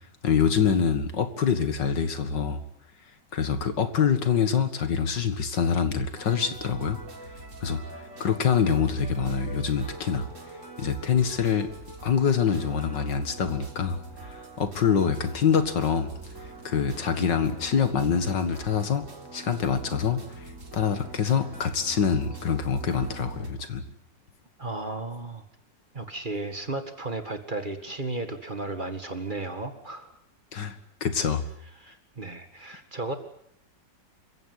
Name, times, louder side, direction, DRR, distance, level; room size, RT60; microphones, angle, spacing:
voice 1, 0.2-2.6 3.3-7.0 7.6-7.8 8.2-10.3 10.8-11.7 12.0-14.0 14.2-16.1 16.6-19.0 19.3-20.2 20.7-23.8 30.5-30.7 31.0-31.4, left 6 dB, 75° left, 10 dB, 2.5 m, -25 dB
sound 1, 6.1-23.5, right 2 dB, 45° right, 3.9 m, -44 dB
voice 2, 24.6-25.4 25.9-30.1 31.8-33.1, right 2 dB, 25° right, 8 dB, 2.0 m, -34 dB
27.0 x 16.0 x 9.6 m, 0.72 s
omnidirectional pair, 1.9 m